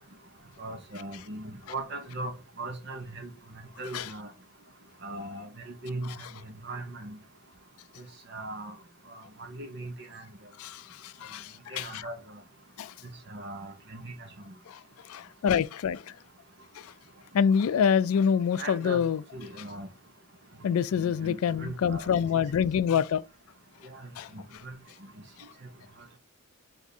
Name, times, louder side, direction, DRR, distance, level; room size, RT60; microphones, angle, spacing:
voice 1, 0.6-4.3 5.0-7.2 8.3-8.8 9.1-10.2 11.7-12.2 13.3-14.5 18.6-19.0 19.3-19.9 20.9-22.3 23.8-24.7 25.0-25.1, right 2 dB, 50° right, 1.0 m, -39 dB
voice 2, 10.6-12.1 12.8-12.9 14.7-14.8 15.1-16.0 16.8-16.9 17.3-19.2 20.6-23.2 24.2-24.3, left 7 dB, 75° left, 0.3 m, -26 dB
3.6 x 3.5 x 4.1 m
head